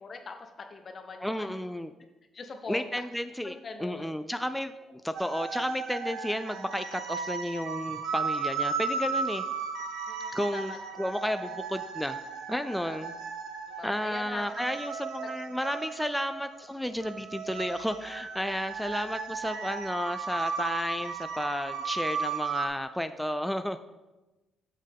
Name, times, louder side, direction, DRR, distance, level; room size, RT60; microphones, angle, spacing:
voice 1, 0.0-1.6 2.3-3.0 3.4-4.1 10.1-10.8 12.8-13.0 13.7-14.6, left 3 dB, 45° left, 5 dB, 0.7 m, -42 dB
voice 2, 1.2-1.9 2.7-4.7 5.0-9.4 10.3-12.2 12.5-13.1 13.8-23.8, equal, 5° left, 9 dB, 0.3 m, -32 dB
sound 1, 5.1-22.7, right 5 dB, 85° right, 0.8 m, -35 dB
7.4 x 6.3 x 3.5 m, 1.1 s
cardioid pair, 90°, 0 cm